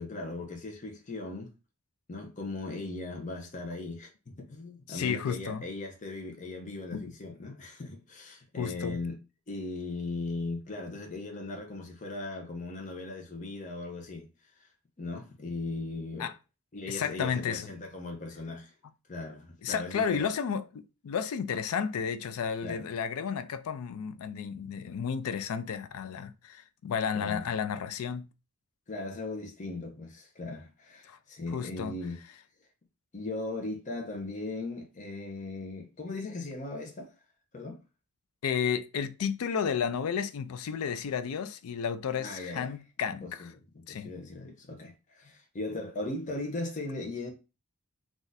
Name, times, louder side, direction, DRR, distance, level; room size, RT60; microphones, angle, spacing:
voice 1, 0.0-1.5 2.1-9.2 9.5-14.3 15.0-16.3 16.7-18.7 19.1-20.3 22.6-22.9 27.1-27.5 28.9-32.2 33.1-37.1 37.5-37.8 42.2-42.7 43.1-47.3, left 2 dB, 35° left, 0.6 m, -38 dB
voice 2, 4.9-5.6 6.9-7.1 8.6-9.0 16.2-16.3 16.9-17.7 19.6-28.3 31.1-31.2 31.5-31.9 38.4-43.5 43.9-44.1, left 7 dB, 75° left, 0.4 m, -32 dB
2.6 x 2.4 x 3.9 m
head